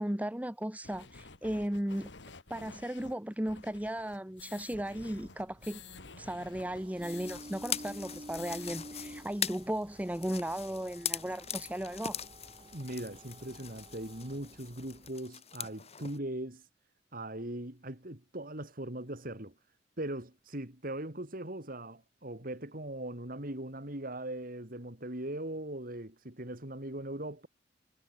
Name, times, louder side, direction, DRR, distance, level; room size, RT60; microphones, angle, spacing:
voice 1, 0.0-2.1 2.5-5.8 6.2-12.2, right 1 dB, 10° right, 1.0 m, -36 dB
sound 1, 0.8-7.4 7.7-7.8 8.1-8.7, left 4 dB, 90° left, 2.4 m, -51 dB
sound 2, 4.8-15.1, right 1 dB, 30° right, 3.5 m, -51 dB
sound 3, 7.0-16.2, left 8 dB, 35° left, 4.0 m, -41 dB
voice 2, 12.7-16.6 17.1-19.5 20.0-27.5, right 1 dB, 55° right, 3.9 m, -40 dB
head